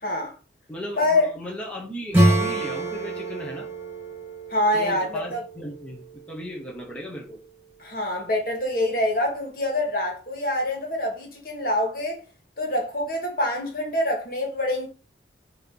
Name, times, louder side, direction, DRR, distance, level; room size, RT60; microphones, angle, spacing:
voice 1, 0.0-0.3 1.0-1.3 4.5-5.4 7.8-12.2 12.6-14.9, left 1 dB, 50° left, 1.9 m, -25 dB
voice 2, 0.7-3.7 4.7-7.4, equal, 5° left, 1.1 m, -36 dB
Acoustic guitar / Strum, 2.1-6.4, right 1 dB, 10° right, 2.2 m, -26 dB
6.7 x 3.0 x 5.4 m
head